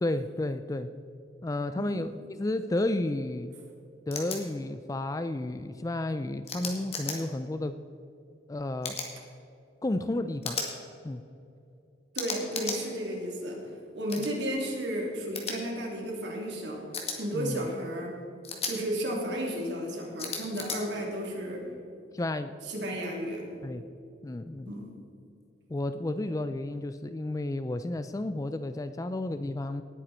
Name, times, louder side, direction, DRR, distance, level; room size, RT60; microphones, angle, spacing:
voice 1, 0.0-0.9 1.4-3.5 4.1-7.8 8.5-9.0 9.8-10.6 11.0-11.2 14.1-14.3 17.3-17.7 22.1-22.5 23.6-23.9 24.2-24.7 25.7-29.8, left 2 dB, 20° left, 11 dB, 0.3 m, -32 dB
voice 2, 1.7-2.1 12.1-13.6 13.9-16.8 17.2-18.2 18.6-21.6 22.6-23.4 24.6-24.9, equal, 70° right, -1 dB, 3.2 m, -33 dB
sound 1, 4.1-4.4 6.5-7.2 8.8-9.1 10.4-10.7 12.1-12.8 14.1-14.3 15.3-15.5 16.9-17.2 18.4-18.7 20.2-20.8, left 5 dB, 35° left, 2.0 m, -34 dB
18.5 x 9.2 x 4.4 m, 2.7 s
head